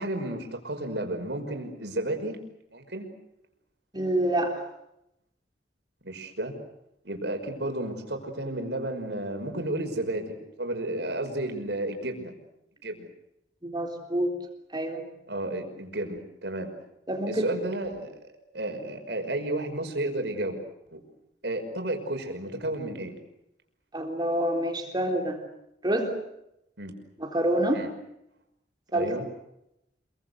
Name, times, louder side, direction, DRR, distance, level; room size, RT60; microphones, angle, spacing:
voice 1, 0.0-2.4 2.7-3.1 6.0-6.5 7.0-12.3 12.8-13.1 15.3-16.7 17.3-20.6 20.9-21.0 21.4-23.1 26.8-26.9 27.7-27.9 28.9-29.3, right 1 dB, 70° right, 5 dB, 5.8 m, -32 dB
voice 2, 3.9-4.6 13.6-14.3 14.7-15.0 17.1-17.5 23.9-25.4 25.8-26.1 27.2-27.8 28.9-29.1, right 1 dB, 25° right, 3 dB, 3.7 m, -27 dB
28.0 x 23.0 x 8.2 m, 0.84 s
head